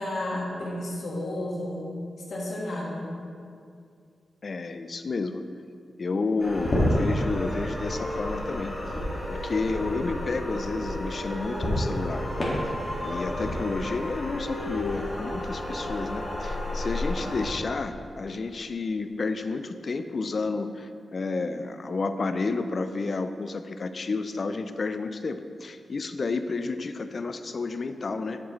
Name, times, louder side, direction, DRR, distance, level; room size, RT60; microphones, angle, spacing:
voice 1, 0.0-1.9 2.3-3.1, left 1 dB, 80° left, -4 dB, 1.5 m, -32 dB
voice 2, 4.4-5.4 6.0-8.7 9.3-12.3 13.0-28.4, left 3 dB, 50° left, 9 dB, 0.4 m, -31 dB
sound 1, 6.4-17.5, left 1 dB, 30° left, 1.9 m, -30 dB
8.0 x 7.5 x 3.1 m, 2.3 s
wide cardioid pair, 105°, 0 cm